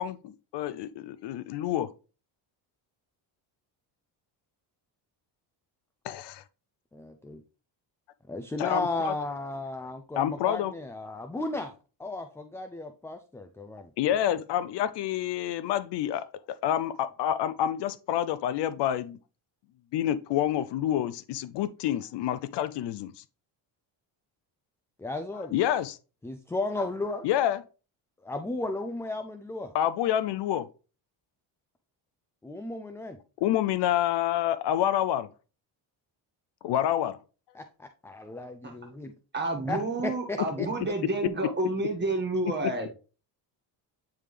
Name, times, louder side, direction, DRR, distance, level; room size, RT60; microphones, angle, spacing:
voice 1, 0.0-1.9 6.0-6.4 8.6-9.1 10.2-10.7 14.0-19.2 19.9-23.2 25.5-26.0 27.2-27.6 29.7-30.7 33.4-35.3 36.6-37.2 41.2-41.3 42.4-42.7, left 11 dB, 60° left, 0.5 m, -28 dB
voice 2, 6.9-7.4 8.3-13.9 25.0-25.5 26.2-27.3 28.2-29.7 32.4-33.2 37.5-39.1 39.7-40.7, left 2 dB, 5° left, 0.3 m, -34 dB
voice 3, 39.3-42.9, right 2 dB, 20° right, 1.7 m, -30 dB
9.1 x 3.5 x 3.3 m
cardioid pair, 100°, 47 cm